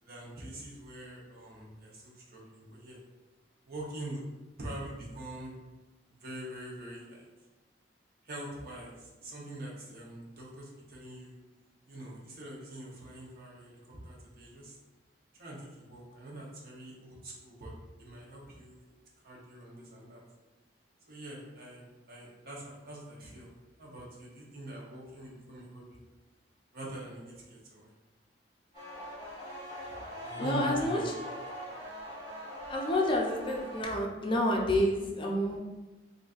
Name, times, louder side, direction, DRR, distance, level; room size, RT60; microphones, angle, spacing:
voice 1, 0.0-3.0 3.7-4.2 4.6-5.6 6.1-7.2 8.2-11.3 11.9-14.8 15.4-17.7 18.0-18.8 19.2-20.2 21.1-23.5 23.8-26.0 26.7-27.9 30.2-31.2, right 1 dB, 55° right, -3 dB, 0.8 m, -44 dB
sound 1, 28.7-33.8, equal, 30° right, 1.3 m, -42 dB
voice 2, 30.4-31.1 32.7-35.6, left 1 dB, 30° left, -1 dB, 0.4 m, -29 dB
3.9 x 2.6 x 2.4 m, 1.2 s
head